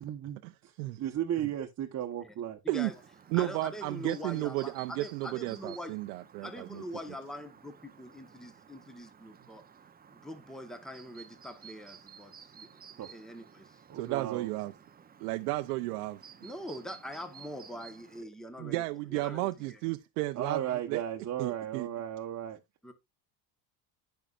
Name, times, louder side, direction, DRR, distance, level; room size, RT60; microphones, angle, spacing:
voice 1, 0.0-2.6 13.0-13.1 13.9-14.5 20.3-22.6, right 10 dB, 35° right, 1.1 m, -35 dB
voice 2, 2.6-2.9 3.3-6.0 6.4-9.6 10.1-12.7 13.0-13.8 16.4-18.8 19.1-19.8 22.8-22.9, equal, ahead, 1.2 m, -43 dB
Chirp tweet, 2.8-18.2, right 7 dB, 20° right, 0.8 m, -55 dB
voice 3, 3.3-6.8 13.9-14.7 15.2-16.2 18.6-20.6 20.9-21.0 21.4-21.9, right 19 dB, 90° right, 0.7 m, -33 dB
14.5 x 5.7 x 2.5 m
supercardioid pair, 110°, 44 cm